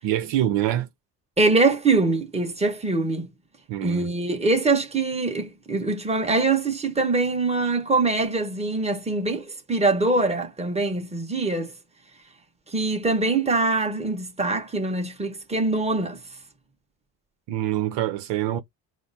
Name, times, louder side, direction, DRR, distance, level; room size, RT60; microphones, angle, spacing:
voice 1, 0.0-0.9 3.7-4.1 17.5-18.6, right 13 dB, 70° right, 0.9 m, -25 dB
voice 2, 1.4-3.3 3.8-11.7 12.7-16.2, right 3 dB, 15° right, 1.6 m, -23 dB
4.8 x 2.2 x 4.2 m
supercardioid pair, 70°, 43 cm